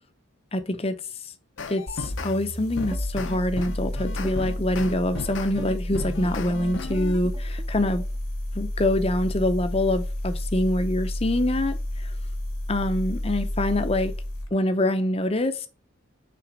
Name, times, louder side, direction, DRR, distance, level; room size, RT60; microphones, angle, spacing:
voice 1, 0.5-0.9 1.7-8.0 8.5-11.8 12.0-12.1 12.7-14.1 14.5-15.7, left 1 dB, 30° left, 0.7 m, -25 dB
sound 1, 1.6-2.3 2.8-7.2, left 3 dB, 60° left, 0.8 m, -35 dB
sound 2, 1.9-14.5, left 1 dB, 90° left, 2.5 m, -31 dB
sound 3, 2.9-8.2, right 2 dB, 20° right, 0.4 m, -43 dB
5.9 x 3.9 x 5.0 m
head